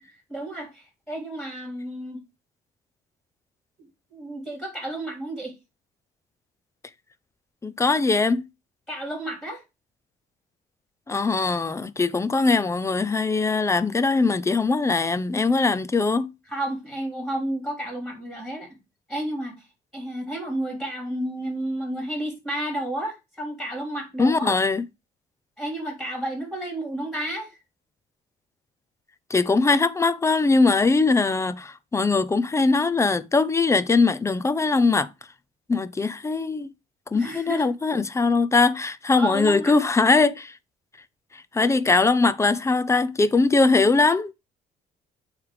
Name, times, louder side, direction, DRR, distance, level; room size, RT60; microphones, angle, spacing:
voice 1, 0.3-2.2 4.1-5.5 8.9-9.6 16.5-18.8 19.1-19.7 19.9-24.5 25.6-27.6 37.1-37.7 39.2-39.7, right 1 dB, ahead, 3.5 m, -31 dB
voice 2, 7.6-8.4 11.1-16.3 24.2-24.8 29.3-35.1 35.7-36.7 37.1-40.5 41.5-44.3, left 3 dB, 15° left, 0.6 m, -21 dB
8.4 x 3.3 x 4.8 m
cardioid pair, 110°, 17 cm